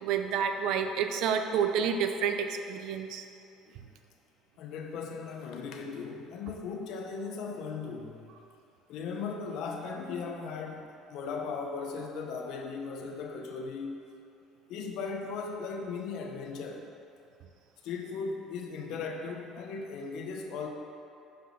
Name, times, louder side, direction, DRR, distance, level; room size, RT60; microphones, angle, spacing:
voice 1, 0.0-3.2, right 7 dB, 65° right, 6 dB, 0.5 m, -29 dB
voice 2, 4.6-8.3 8.9-14.0 14.7-16.8 17.8-20.7, left 5 dB, 65° left, 2 dB, 0.8 m, -37 dB
6.0 x 5.2 x 5.6 m, 2.6 s
cardioid pair, 135°, 0 cm